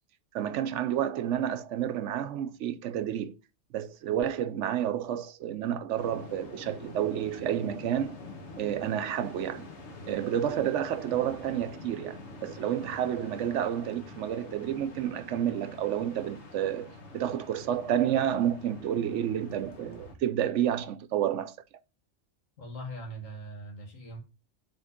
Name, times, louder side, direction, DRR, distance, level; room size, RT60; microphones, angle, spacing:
voice 1, 0.3-3.3 3.7-8.2 8.6-9.7 10.1-21.6, right 10 dB, 70° right, 0.9 m, -30 dB
sound 1, 6.0-20.1, left 3 dB, 60° left, 1.6 m, -46 dB
voice 2, 22.6-24.2, right 1 dB, 85° left, 2.3 m, -41 dB
7.4 x 3.9 x 4.9 m
omnidirectional pair, 1.3 m